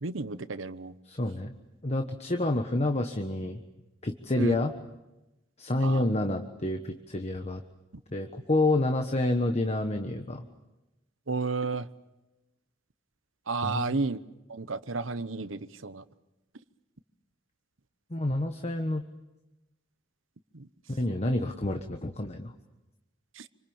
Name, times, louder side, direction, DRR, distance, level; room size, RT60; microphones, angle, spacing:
voice 1, 0.0-0.9 4.4-4.6 5.8-6.1 11.3-11.9 13.5-14.2 14.5-16.0 20.5-20.7 23.4-23.5, right 3 dB, 80° right, 13 dB, 1.0 m, -32 dB
voice 2, 1.1-1.5 1.8-3.6 4.0-4.7 5.6-7.6 8.1-10.5 13.6-14.0 18.1-19.1 21.0-22.5, left 1 dB, 35° left, 5 dB, 1.3 m, -28 dB
27.5 x 25.5 x 7.2 m, 1.0 s
head